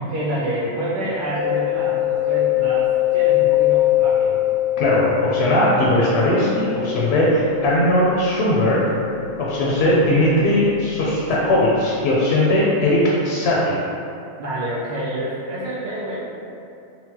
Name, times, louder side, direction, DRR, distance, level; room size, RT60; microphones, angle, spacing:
voice 1, 0.0-4.5 9.5-9.9 14.4-16.2, right 1 dB, 85° right, -7 dB, 0.4 m, -28 dB
Mallet percussion, 1.3-10.9, left 14 dB, 60° right, 1.3 m, -23 dB
voice 2, 4.8-8.9 9.4-13.8, left 1 dB, 65° left, -6 dB, 0.7 m, -19 dB
4.0 x 2.1 x 2.7 m, 2.6 s
omnidirectional pair, 1.4 m